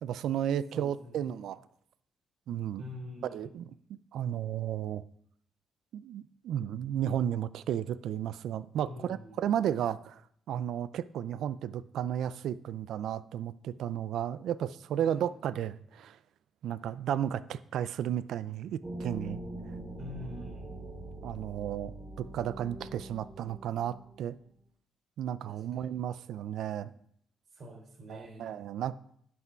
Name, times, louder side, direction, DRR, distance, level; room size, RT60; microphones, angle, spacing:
voice 1, 0.0-1.6 2.5-2.8 3.3-3.7 4.1-5.0 5.9-10.2 10.5-16.2 16.6-19.4 21.2-24.4 25.2-26.9 28.1-29.0, right 10 dB, 75° right, 16 dB, 0.4 m, -33 dB
voice 2, 0.7-1.3 2.8-3.5 8.8-9.5 15.0-15.2 20.0-20.6 25.5-25.9 27.5-28.6, left 1 dB, 55° right, 1 dB, 3.4 m, -46 dB
sound 1, 18.8-24.3, right 1 dB, 30° right, 2.4 m, -43 dB
11.0 x 6.1 x 4.6 m, 0.68 s
cardioid pair, 90°, 0 cm